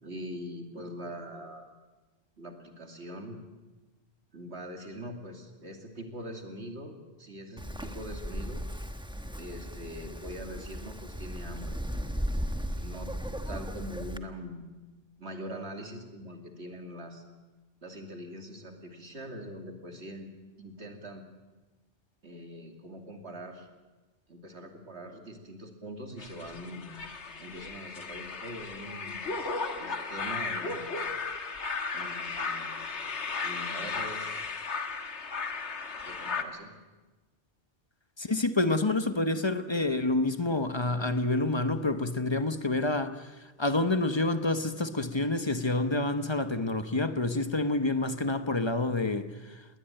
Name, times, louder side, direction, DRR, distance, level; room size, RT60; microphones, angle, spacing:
voice 1, 0.0-1.7 2.4-3.4 4.3-8.6 9.4-11.8 12.8-13.1 13.5-14.6 15.2-17.2 17.8-20.3 20.6-21.2 22.2-23.7 24.3-27.0 27.4-29.3 29.8-30.8 31.9-32.8 33.4-34.4 36.0-36.7, equal, 75° right, 3.0 m, -43 dB
Wind, 7.6-14.2, equal, 5° right, 1.1 m, -36 dB
sound 1, 26.2-36.4, left 4 dB, 85° left, 1.8 m, -35 dB
voice 2, 38.2-43.3 43.6-49.6, left 2 dB, 25° left, 1.0 m, -28 dB
20.5 x 19.5 x 9.0 m
omnidirectional pair, 1.1 m